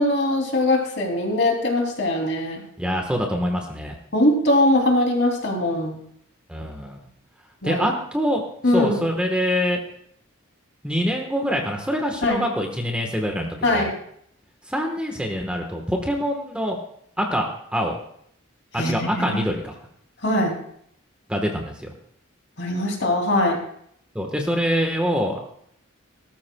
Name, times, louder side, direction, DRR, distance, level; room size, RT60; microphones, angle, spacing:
voice 1, 0.0-2.6 4.1-6.0 7.6-7.8 8.6-9.0 12.2-12.5 13.6-13.9 18.7-19.4 20.2-20.6 22.6-23.6, left 1 dB, 60° left, 1 dB, 2.7 m, -21 dB
voice 2, 2.8-3.9 6.5-7.0 7.6-8.4 8.7-9.8 10.8-13.9 14.7-16.8 17.2-18.0 18.7-19.7 21.3-21.9 24.1-25.4, equal, 5° right, 2 dB, 1.1 m, -25 dB
18.5 x 13.0 x 2.2 m, 0.67 s
head